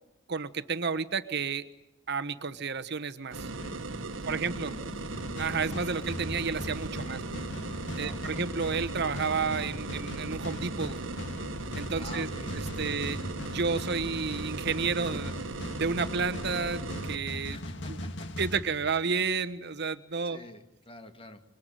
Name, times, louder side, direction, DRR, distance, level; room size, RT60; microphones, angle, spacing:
voice 1, 0.3-1.6 2.1-3.5 4.3-4.8 5.4-7.2 7.9-11.0 11.7-12.3 12.8-15.3 15.8-17.6 18.4-20.4, right 5 dB, 55° right, 12 dB, 1.1 m, -31 dB
sound 1, 3.3-17.2, right 2 dB, 70° right, 1.4 m, -38 dB
voice 2, 4.1-5.1 7.0-7.3 8.0-8.4 11.9-12.5 17.5-18.1 20.2-21.4, left 1 dB, 30° left, 7 dB, 2.2 m, -47 dB
sound 2, 5.1-19.3, left 1 dB, 65° left, 1.9 m, -40 dB
26.5 x 22.5 x 9.2 m, 0.88 s
head